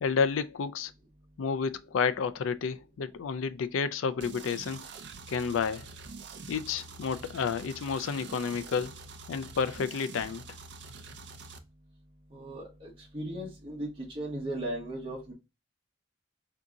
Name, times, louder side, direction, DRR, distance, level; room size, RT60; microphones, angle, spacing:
voice 1, 0.0-0.9 1.4-4.9 5.3-5.9 6.5-8.9 9.3-10.4, left 5 dB, 85° left, 0.4 m, -30 dB
sound 1, 4.2-11.6, right 4 dB, 60° right, 0.5 m, -46 dB
voice 2, 12.3-15.3, right 1 dB, 25° right, 1.0 m, -37 dB
3.7 x 2.7 x 3.5 m
head